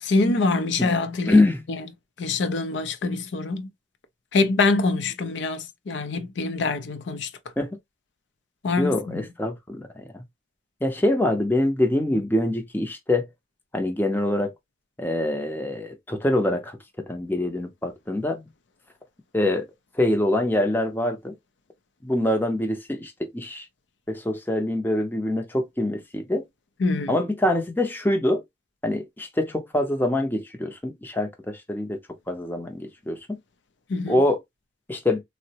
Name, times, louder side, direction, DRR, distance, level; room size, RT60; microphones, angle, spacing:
voice 1, 0.0-1.4 1.7-1.8 2.2-3.7 4.3-7.3 8.6-9.2 26.8-27.2 33.9-34.2, left 3 dB, 75° left, 0.5 m, -24 dB
voice 2, 1.3-1.6 7.6-7.8 8.8-10.2 10.8-13.3 13.7-14.5 15.0-16.8 17.1-18.4 19.3-19.7 20.0-21.3 22.0-23.7 24.1-26.4 27.1-28.4 28.8-32.0 32.3-33.2 34.1-34.4 34.9-35.2, left 1 dB, 10° left, 0.5 m, -24 dB
3.6 x 2.0 x 2.7 m
head